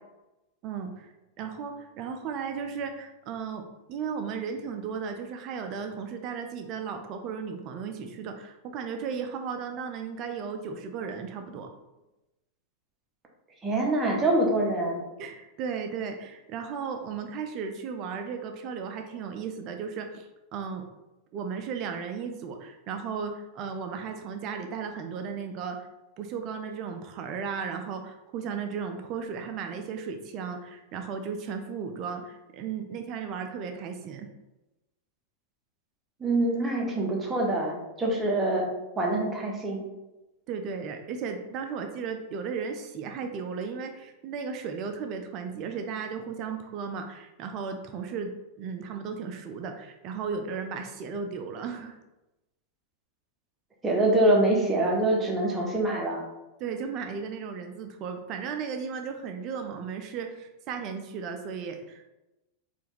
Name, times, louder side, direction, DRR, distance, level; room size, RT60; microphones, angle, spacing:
voice 1, 0.6-11.7 15.2-20.8 21.3-25.8 26.2-34.3 40.5-52.0 56.6-62.0, right 6 dB, 40° right, 5 dB, 0.5 m, -35 dB
voice 2, 13.6-15.0 36.2-38.7 39.0-39.8 53.8-56.2, right 1 dB, 15° right, -1 dB, 1.0 m, -25 dB
4.5 x 2.5 x 3.4 m, 0.99 s
figure-of-eight pair, 90°, 0 cm